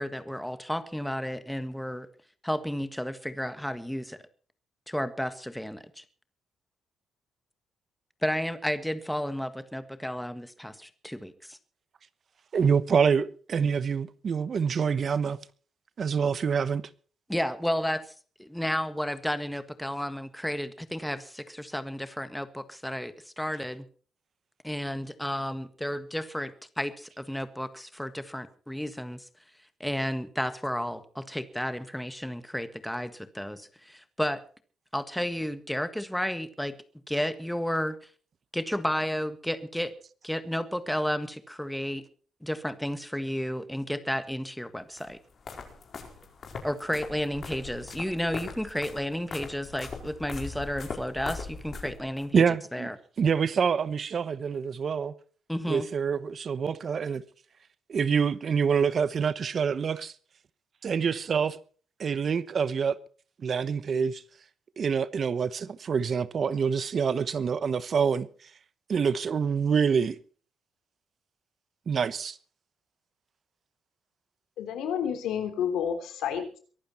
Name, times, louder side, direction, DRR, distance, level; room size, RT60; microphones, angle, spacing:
voice 1, 0.0-2.1 2.4-4.2 4.9-6.0 8.2-11.6 17.3-18.1 18.4-23.8 24.6-29.3 29.8-34.4 34.9-36.8 37.1-38.0 38.5-39.9 40.2-42.0 42.4-45.2 46.6-52.4 52.7-53.0 55.5-55.9, equal, 5° left, 1.6 m, -32 dB
voice 2, 12.5-15.4 16.0-16.8 52.3-52.9 53.2-55.1 55.7-57.2 57.9-60.1 60.8-61.6 62.0-63.0 63.4-64.2 64.8-68.3 68.9-70.2 71.9-72.4, right 6 dB, 50° right, 1.0 m, -26 dB
sound 1, 45.0-52.3, left 4 dB, 50° left, 4.7 m, -41 dB
voice 3, 74.6-76.6, left 8 dB, 85° left, 3.4 m, -30 dB
23.0 x 11.5 x 4.3 m
cardioid pair, 90°, 0 cm